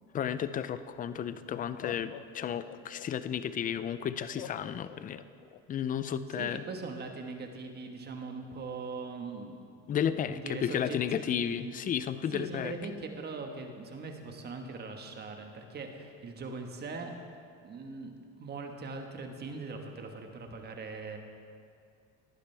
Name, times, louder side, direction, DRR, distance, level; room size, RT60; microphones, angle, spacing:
voice 1, 0.1-5.2 5.7-6.6 9.9-12.7, left 9 dB, 25° left, 13 dB, 0.5 m, -33 dB
Laughter, 1.0-1.1 1.7-3.4 4.4-5.6, left 12 dB, 75° left, 0.7 m, -46 dB
voice 2, 6.4-9.8 10.3-11.7 12.3-17.1 17.6-21.2, right 4 dB, 30° right, 4 dB, 1.4 m, -41 dB
18.0 x 11.5 x 3.4 m, 2.4 s
supercardioid pair, 120°, 31 cm